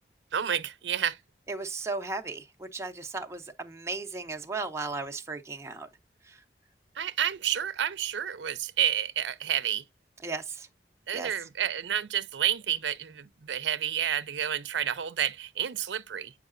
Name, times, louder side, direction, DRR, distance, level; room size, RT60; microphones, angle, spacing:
voice 1, 0.3-1.2 7.0-9.8 11.1-16.3, right 9 dB, 80° right, 0.5 m, -30 dB
voice 2, 1.5-5.9 6.3-6.4 10.2-10.7 11.1-11.3, right 3 dB, 15° right, 0.6 m, -36 dB
8.1 x 4.7 x 2.5 m
head